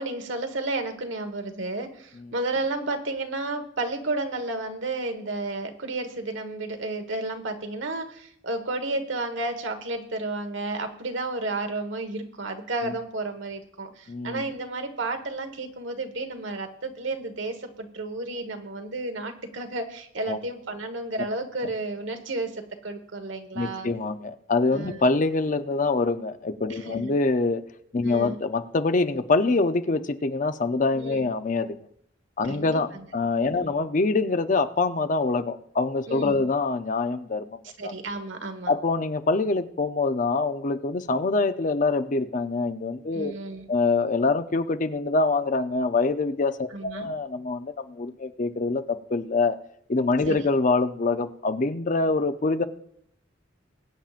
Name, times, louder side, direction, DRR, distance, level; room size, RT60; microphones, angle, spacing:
voice 1, 0.0-23.9 24.7-25.0 26.7-27.1 28.0-28.4 31.0-31.3 32.5-33.1 33.5-33.7 36.1-36.4 37.8-38.7 43.1-43.7 46.7-47.1 50.3-50.4, right 2 dB, 80° right, 5 dB, 1.4 m, -32 dB
voice 2, 14.1-14.5 20.3-20.4 23.5-27.6 27.9-31.8 32.4-37.9 38.7-43.3 43.7-49.6 49.9-52.6, left 3 dB, 40° left, 10 dB, 0.6 m, -25 dB
21.5 x 8.8 x 2.5 m, 0.69 s
head